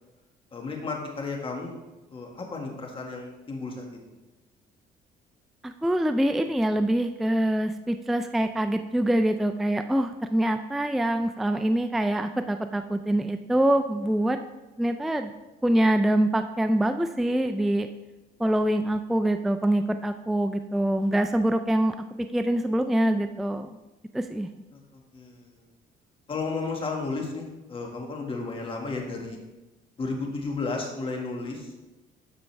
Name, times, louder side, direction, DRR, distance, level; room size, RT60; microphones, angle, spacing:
voice 1, 0.5-1.8 2.1-3.9 24.7-25.7 26.3-29.4 30.0-31.8, left 3 dB, 30° left, 1 dB, 1.7 m, -33 dB
voice 2, 5.6-14.4 14.8-15.3 15.6-17.9 18.4-21.9 22.3-23.7 24.1-24.5, right 1 dB, ahead, 8 dB, 0.3 m, -24 dB
11.5 x 5.2 x 3.3 m, 1.1 s
cardioid pair, 110°, 17 cm